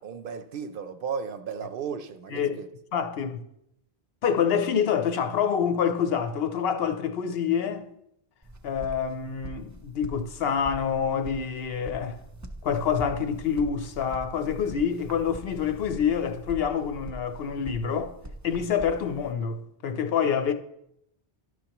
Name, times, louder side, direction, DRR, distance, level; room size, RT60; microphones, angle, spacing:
voice 1, 0.0-2.7, right 6 dB, 65° right, 0.7 m, -35 dB
voice 2, 2.9-3.5 4.2-7.9 8.6-12.2 12.6-18.1 18.4-20.5, left 7 dB, 70° left, 0.8 m, -27 dB
sound 1, 8.4-19.3, right 1 dB, 20° right, 0.5 m, -43 dB
11.0 x 6.3 x 2.9 m
omnidirectional pair, 1.1 m